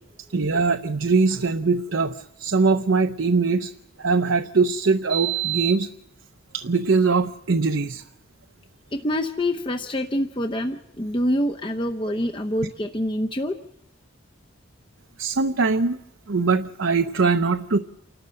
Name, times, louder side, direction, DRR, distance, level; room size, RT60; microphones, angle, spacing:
voice 1, 0.3-3.7 4.0-5.9 6.5-8.0 15.2-16.0 16.3-17.8, right 4 dB, 75° right, 7 dB, 0.8 m, -21 dB
voice 2, 8.9-13.6, left 1 dB, 25° left, 5 dB, 0.8 m, -26 dB
29.0 x 12.5 x 7.7 m, 0.87 s
head